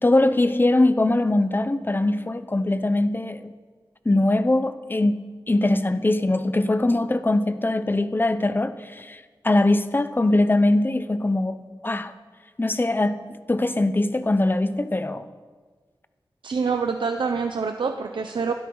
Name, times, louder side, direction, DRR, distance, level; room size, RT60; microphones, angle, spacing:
voice 1, 0.0-3.5 4.0-12.1 12.6-13.2 13.5-15.3, left 2 dB, 25° left, 0.7 m, -22 dB
voice 2, 16.4-18.5, right 5 dB, 85° right, 0.7 m, -26 dB
22.0 x 12.5 x 4.0 m
wide cardioid pair, 85°, 8 cm